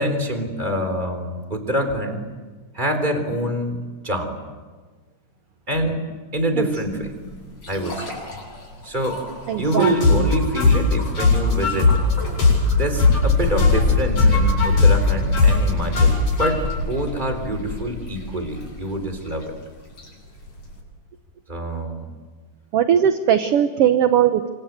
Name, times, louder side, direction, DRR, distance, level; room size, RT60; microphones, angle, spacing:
voice 1, 0.0-2.2 2.7-4.4 5.7-6.0 6.3-8.1 8.8-9.2 9.6-11.9 12.8-19.5 21.5-22.1, right 1 dB, 15° right, 7 dB, 3.5 m, -26 dB
sound 1, 6.6-20.8, left 1 dB, 40° left, 8.2 m, -39 dB
voice 2, 9.5-10.3 22.7-24.5, right 9 dB, 65° right, 9 dB, 1.6 m, -19 dB
sound 2, 9.7-13.3 13.6-16.5, left 4 dB, 65° left, 9.2 m, -18 dB
sound 3, 13.2-18.9, left 4 dB, 85° left, 5.4 m, -26 dB
27.0 x 25.5 x 8.2 m, 1.4 s
omnidirectional pair, 3.5 m